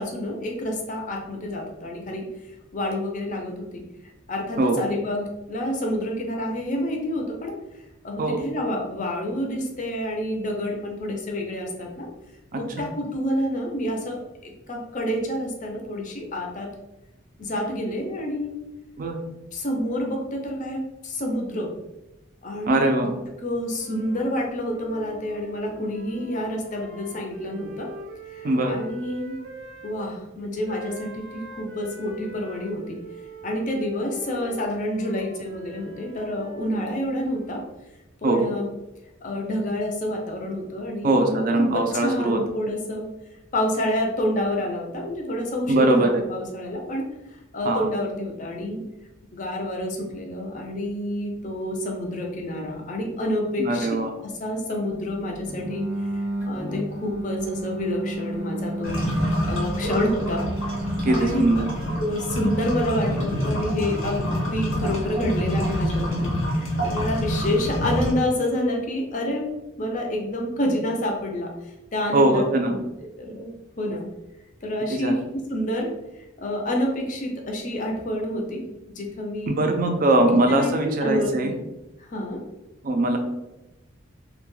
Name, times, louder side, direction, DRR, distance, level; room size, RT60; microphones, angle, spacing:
voice 1, 0.0-2.3 2.7-3.8 4.3-7.5 8.0-12.1 12.5-16.7 17.4-18.6 19.5-21.7 22.4-22.9 23.4-27.9 28.3-29.3 29.8-33.0 33.4-37.6 38.2-38.7 39.2-43.1 43.5-47.1 47.5-48.8 49.3-55.8 56.1-60.4 61.1-61.4 62.0-69.5 69.8-72.8 73.2-74.1 74.6-78.6 79.0-79.6 80.3-81.5 82.0-82.4, left 1 dB, 40° left, 1 dB, 0.5 m, -28 dB
voice 2, 22.7-23.1 28.4-28.8 38.2-38.5 41.0-42.4 45.7-46.2 47.6-47.9 53.6-54.1 61.0-61.6 72.1-72.7 74.9-75.1 79.5-81.5 82.8-83.2, right 2 dB, 40° right, 4 dB, 0.4 m, -21 dB
sound 1, 23.7-29.9 30.6-37.7, right 1 dB, 90° right, 0.6 m, -43 dB
sound 2, 55.5-66.3, right 1 dB, 5° right, 0.6 m, -33 dB
sound 3, 58.8-68.1, equal, 80° left, 0.7 m, -27 dB
2.2 x 2.1 x 3.0 m, 0.97 s
head